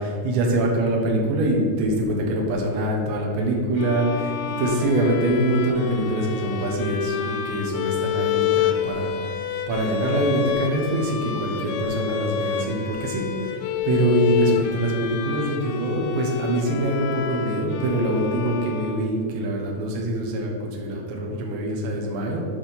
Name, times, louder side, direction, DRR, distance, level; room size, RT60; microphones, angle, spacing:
voice 1, 0.0-22.4, right 1 dB, 85° right, -1 dB, 3.6 m, -24 dB
sound 1, 3.8-19.4, left 9 dB, 85° left, 2.2 m, -29 dB
8.9 x 5.2 x 5.8 m, 2.1 s
omnidirectional pair, 5.0 m